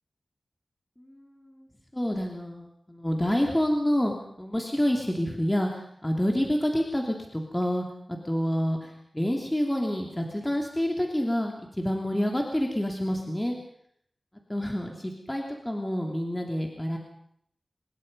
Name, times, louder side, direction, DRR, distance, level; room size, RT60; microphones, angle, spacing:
voice 1, 1.0-1.7 1.9-13.6 14.5-17.0, equal, 10° left, 1 dB, 2.8 m, -28 dB
25.5 x 21.0 x 5.4 m, 0.69 s
wide cardioid pair, 90°, 0 cm